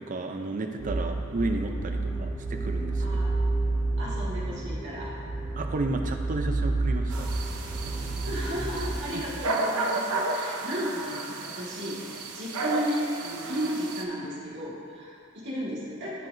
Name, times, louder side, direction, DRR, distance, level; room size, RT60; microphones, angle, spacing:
voice 1, 0.0-3.1 5.5-7.3, right 2 dB, 35° right, 5 dB, 0.5 m, -32 dB
sound 1, 0.8-9.0, right 2 dB, 5° left, 1.4 m, -30 dB
voice 2, 1.9-2.3 3.0-3.3 4.0-5.1 8.1-16.3, equal, 55° right, -7 dB, 1.8 m, -34 dB
sound 2, 7.1-14.0, right 2 dB, 85° right, 0.7 m, -33 dB
13.0 x 4.6 x 2.6 m, 2.5 s
head